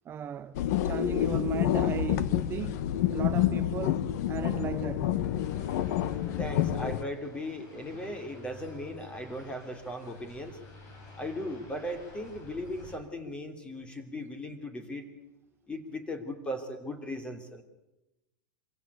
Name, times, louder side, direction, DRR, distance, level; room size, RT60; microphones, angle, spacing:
voice 1, 0.0-2.8 3.1-5.1, right 10 dB, 25° right, 0.7 m, -37 dB
sound 1, 0.5-7.0, left 11 dB, 60° left, 1.2 m, -28 dB
sound 2, 5.4-13.0, left 2 dB, 35° left, 6.6 m, -51 dB
voice 2, 6.4-10.6 11.2-15.1 15.7-17.6, left 1 dB, 10° left, 3.0 m, -37 dB
25.0 x 16.0 x 8.2 m
supercardioid pair, 145°, 10 cm